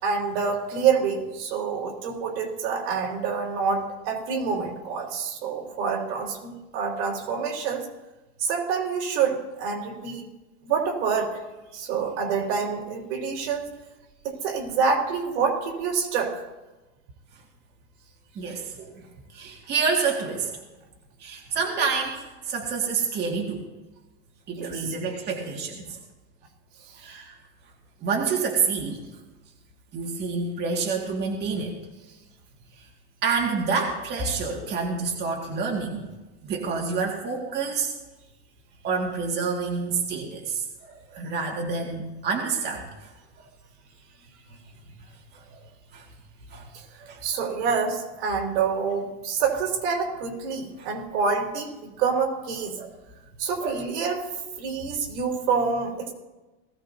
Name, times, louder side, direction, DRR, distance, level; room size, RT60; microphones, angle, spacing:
voice 1, 0.0-7.9 8.4-10.3 10.7-11.4 11.7-13.7 14.2-16.4 24.6-24.9 46.7-46.8 47.2-52.8 53.4-54.3 54.6-56.1, right 5 dB, 75° right, 1 dB, 3.8 m, -27 dB
voice 2, 18.4-19.0 19.3-20.5 21.2-23.6 24.5-26.0 26.9-27.4 28.0-29.0 29.9-31.7 32.8-32.9 33.2-36.0 36.4-37.9 38.8-43.1 45.3-45.4 45.9-46.1 46.5-46.7 47.0-47.2 50.8-50.9 52.8-52.9 53.6-53.8, right 5 dB, 30° right, -1 dB, 2.0 m, -28 dB
19.0 x 16.0 x 2.7 m, 1.1 s
supercardioid pair, 160°, 34 cm